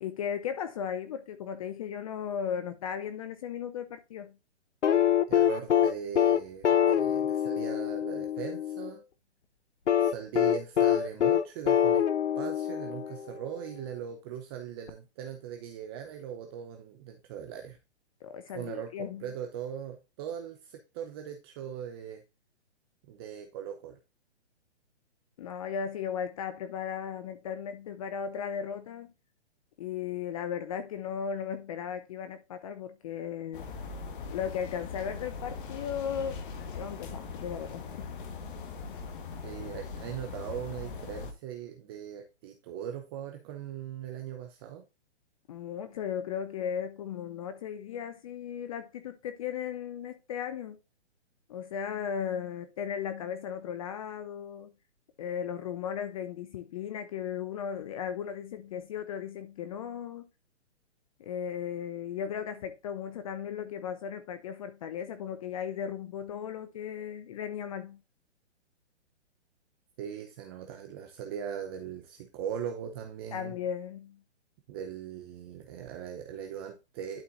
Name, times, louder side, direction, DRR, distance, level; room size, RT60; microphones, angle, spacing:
voice 1, 0.0-4.4 18.2-19.2 25.4-29.1 29.8-33.7 34.3-36.4 36.7-38.1 45.5-50.8 51.5-54.7 55.2-60.3 61.2-68.0 73.3-74.2, left 8 dB, 30° left, 0.6 m, -36 dB
sound 1, 4.8-8.9 9.9-13.5 14.9-15.0, left 10 dB, 85° left, 0.9 m, -25 dB
voice 2, 5.3-9.0 10.0-12.1 12.4-17.8 18.5-22.2 23.1-24.0 39.4-44.8 70.0-73.5 74.7-77.2, right 9 dB, 20° right, 0.6 m, -40 dB
sound 2, 33.5-41.3, left 5 dB, 45° left, 1.4 m, -40 dB
11.5 x 4.3 x 2.5 m
hypercardioid pair, 145°, 34 cm